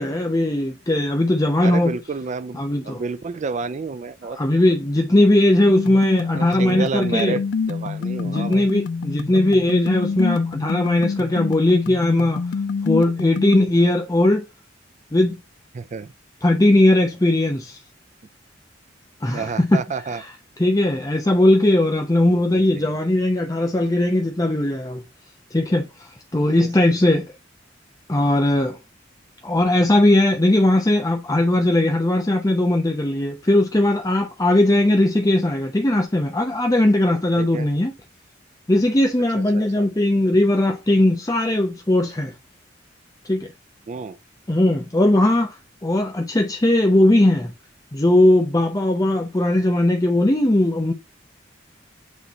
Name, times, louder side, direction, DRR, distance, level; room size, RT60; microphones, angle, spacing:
voice 1, 0.0-2.0 2.5-3.0 4.3-7.4 8.2-12.4 12.8-14.4 15.1-15.4 16.4-17.8 19.2-19.8 20.1-20.3 20.6-25.0 25.5-27.3 28.1-28.8 29.4-37.9 38.7-42.3 43.2-43.5 44.5-47.5 47.9-50.9, left 1 dB, 20° left, 0.7 m, -19 dB
voice 2, 1.6-4.4 6.3-7.4 7.7-8.7 9.3-9.4 15.7-16.1 19.3-20.2 22.3-22.9 26.6-27.0 37.4-37.7 39.4-39.8 43.9-44.2, right 4 dB, 40° right, 0.4 m, -30 dB
sound 1, 5.7-13.7, left 5 dB, 65° left, 0.3 m, -27 dB
8.2 x 3.1 x 4.1 m
head